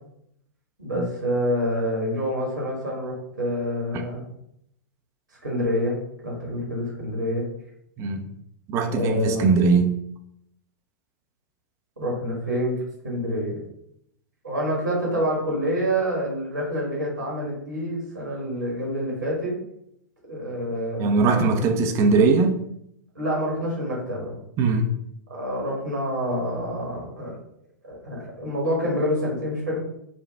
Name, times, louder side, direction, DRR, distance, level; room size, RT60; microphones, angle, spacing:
voice 1, 0.8-4.2 5.4-7.5 8.9-9.5 12.0-13.6 14.4-19.6 20.3-21.2 23.1-24.4 25.3-27.4 27.8-29.8, equal, 80° right, 1.6 m, -27 dB
voice 2, 8.7-10.0 21.0-22.6 24.6-24.9, right 4 dB, 30° right, 0.5 m, -20 dB
5.0 x 2.3 x 3.4 m
figure-of-eight pair, 100°, 10 cm